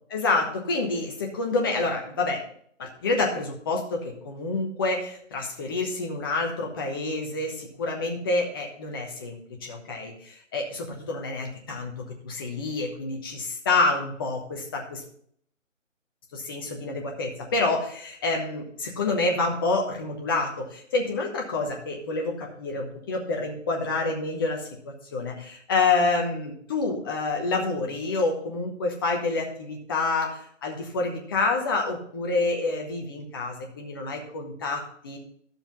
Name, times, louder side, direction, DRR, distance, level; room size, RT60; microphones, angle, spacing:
voice 1, 0.1-2.4 2.8-11.9 12.2-15.0 16.3-24.7 25.1-35.2, left 3 dB, 15° left, 1 dB, 1.1 m, -28 dB
11.5 x 7.1 x 3.9 m, 0.63 s
figure-of-eight pair, 150°, 39 cm